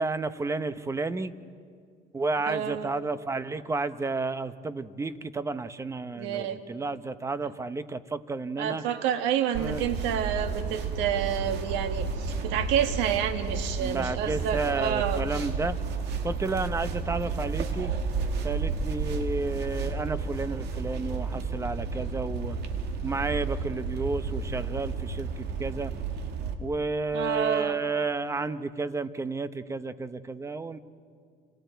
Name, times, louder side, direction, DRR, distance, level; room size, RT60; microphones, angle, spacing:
voice 1, 0.0-1.3 2.1-8.8 9.6-9.8 13.8-15.8 16.2-17.9 18.4-22.6 23.0-25.9 26.6-30.8, right 3 dB, 15° right, 13 dB, 0.8 m, -31 dB
voice 2, 2.5-2.9 6.1-6.6 8.6-15.2 27.1-27.8, right 9 dB, 85° right, 8 dB, 1.5 m, -29 dB
sound 1, 9.5-26.5, right 4 dB, 70° right, 2.1 m, -32 dB
29.5 x 26.0 x 4.6 m, 2.2 s
cardioid pair, 125°, 18 cm